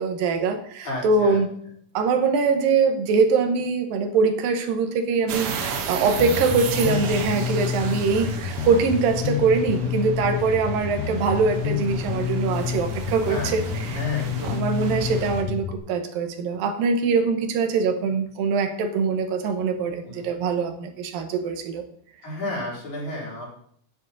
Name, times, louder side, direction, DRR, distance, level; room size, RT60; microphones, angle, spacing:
voice 1, 0.0-1.5 1.9-14.0 14.4-21.8, right 4 dB, 90° right, 6 dB, 2.9 m, -23 dB
voice 2, 0.8-1.4 5.9-6.2 9.8-10.1 13.2-14.6 20.0-20.3 22.2-23.5, left 1 dB, 60° left, -5 dB, 5.2 m, -33 dB
sound 1, 5.3-15.4, right 5 dB, 75° right, 2.9 m, -34 dB
Bass guitar, 6.2-15.8, left 9 dB, 75° left, 1.7 m, -29 dB
10.0 x 9.4 x 4.0 m, 0.64 s
omnidirectional pair, 3.9 m